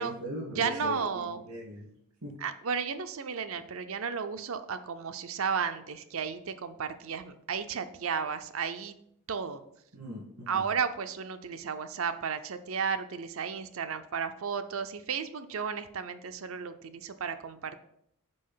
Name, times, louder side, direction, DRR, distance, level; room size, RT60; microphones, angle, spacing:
voice 1, 0.0-1.9 2.2-2.4 9.9-10.7, equal, 90° right, -7 dB, 2.3 m, -40 dB
voice 2, 0.6-1.4 2.4-9.0 9.3-9.6 10.5-17.7, right 6 dB, 65° right, 10 dB, 0.5 m, -33 dB
5.3 x 4.8 x 5.6 m, 0.74 s
head